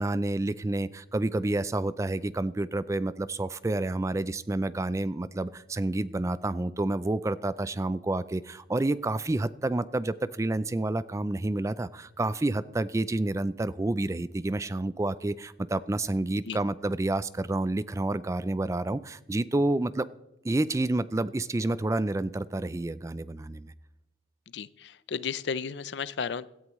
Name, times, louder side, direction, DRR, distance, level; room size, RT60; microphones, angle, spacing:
voice 1, 0.0-20.1 20.4-23.7, right 2 dB, 15° right, 16 dB, 0.3 m, -29 dB
voice 2, 24.5-26.5, left 6 dB, 70° left, 17 dB, 0.5 m, -33 dB
17.0 x 13.0 x 3.1 m, 0.90 s
head